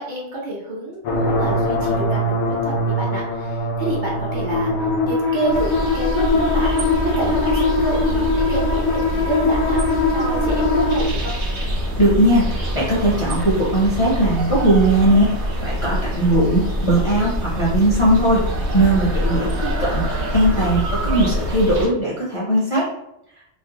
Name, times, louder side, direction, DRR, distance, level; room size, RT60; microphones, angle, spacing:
voice 1, 0.0-6.7 7.0-9.8 10.1-11.4, right 2 dB, 50° right, -4 dB, 0.7 m, -29 dB
sound 1, 1.0-11.0, left 2 dB, 80° left, 0.9 m, -21 dB
sound 2, 5.5-21.9, equal, 75° right, 0.9 m, -25 dB
voice 2, 12.0-15.3 15.6-18.4 18.7-19.5 19.8-22.8, right 1 dB, 45° left, -7 dB, 0.4 m, -18 dB
2.5 x 2.0 x 2.7 m, 0.82 s
omnidirectional pair, 1.2 m